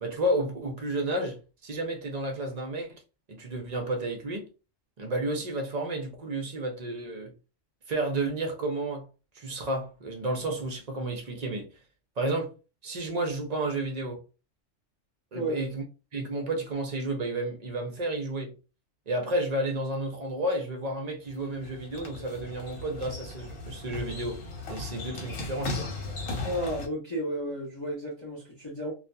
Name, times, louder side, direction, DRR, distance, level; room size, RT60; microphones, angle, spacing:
voice 1, 0.0-3.0 3.3-4.5 5.0-7.3 7.9-9.1 9.3-11.7 12.2-12.5 12.8-14.2 15.3-15.8 16.1-18.6 19.1-24.4 24.7-25.9, right 1 dB, 50° right, 0.5 m, -31 dB
sound 1, 21.2-26.9, left 2 dB, 80° left, 1.2 m, -37 dB
voice 2, 26.4-28.9, right 1 dB, 30° left, 0.6 m, -32 dB
2.7 x 2.2 x 2.2 m
omnidirectional pair, 1.3 m